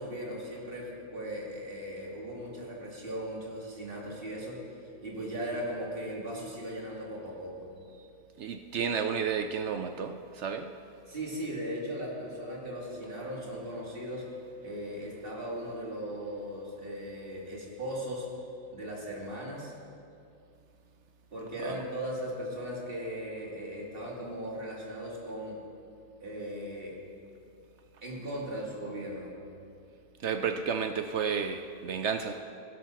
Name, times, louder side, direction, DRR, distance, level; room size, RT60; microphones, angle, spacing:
voice 1, 0.0-4.6 5.0-7.7 11.1-14.3 14.6-18.3 18.7-19.7 21.3-25.6 26.2-27.0 28.0-29.3, equal, 40° right, -4 dB, 2.5 m, -38 dB
voice 2, 8.4-10.7 21.6-21.8 30.2-32.4, right 6 dB, 65° right, 7 dB, 0.7 m, -32 dB
16.5 x 6.5 x 5.9 m, 2.5 s
omnidirectional pair, 1.5 m